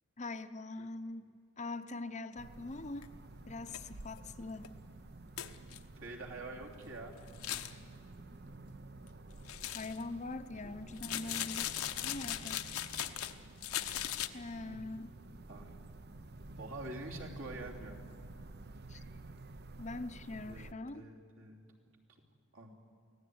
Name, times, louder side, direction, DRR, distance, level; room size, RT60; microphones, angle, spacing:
voice 1, 0.2-1.3 1.6-3.1 3.5-4.7 9.7-12.6 14.3-15.1 18.9-19.2 19.8-21.1, left 2 dB, 30° left, 11 dB, 0.7 m, -43 dB
sound 1, 2.4-20.7, right 2 dB, 45° right, 0.7 m, -51 dB
sound 2, 3.0-3.1 3.7-3.8 4.2-4.3 4.6-4.7 5.4-5.8 7.3-7.7 9.5-10.0 11.0-13.3 13.6-14.3, left 12 dB, 85° left, 1.0 m, -38 dB
voice 2, 6.0-7.1 10.6-11.5 14.5-14.9 15.5-15.8 16.6-18.0 20.5-21.6 22.5-22.8, right 2 dB, 60° right, 0 dB, 3.1 m, -47 dB
24.0 x 16.5 x 9.4 m, 2.4 s
head